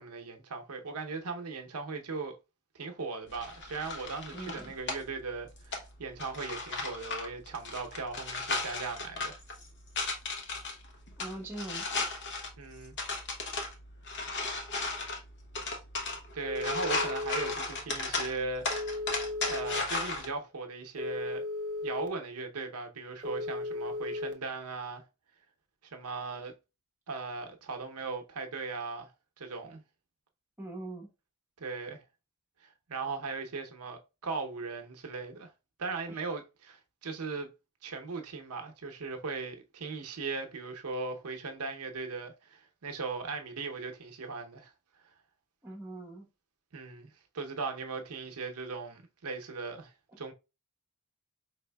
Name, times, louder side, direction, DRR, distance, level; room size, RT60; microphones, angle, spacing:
voice 1, 0.0-2.4 2.7-9.4 12.6-13.0 16.3-18.7 19.5-21.4 21.8-25.0 25.8-26.5 27.1-29.1 29.4-29.8 31.6-32.0 32.6-35.5 35.8-37.5 37.8-44.7 46.7-50.3, right 4 dB, 80° right, 0.7 m, -38 dB
sound 1, 3.3-20.3, left 3 dB, 50° left, 0.9 m, -36 dB
voice 2, 4.3-4.7 11.2-12.0 30.6-31.1 36.1-36.2 45.6-46.3, right 2 dB, 10° right, 1.0 m, -42 dB
Telephone, 16.4-17.5 18.7-19.8 21.0-22.1 23.2-24.3, left 2 dB, 35° right, 0.5 m, -35 dB
4.8 x 3.4 x 2.2 m
head